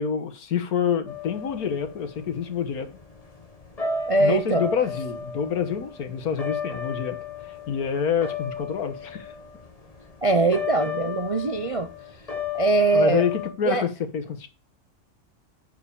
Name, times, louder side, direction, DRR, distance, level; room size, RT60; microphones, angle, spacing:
voice 1, 0.0-2.9 4.2-7.2 7.4-9.3 12.9-14.5, left 7 dB, 75° left, 1.7 m, -27 dB
sound 1, 1.1-13.5, left 5 dB, 25° left, 1.4 m, -35 dB
voice 2, 4.1-4.6 10.2-11.9 12.5-13.3 13.6-13.9, right 2 dB, 40° right, 0.4 m, -21 dB
7.8 x 6.8 x 6.8 m
omnidirectional pair, 1.6 m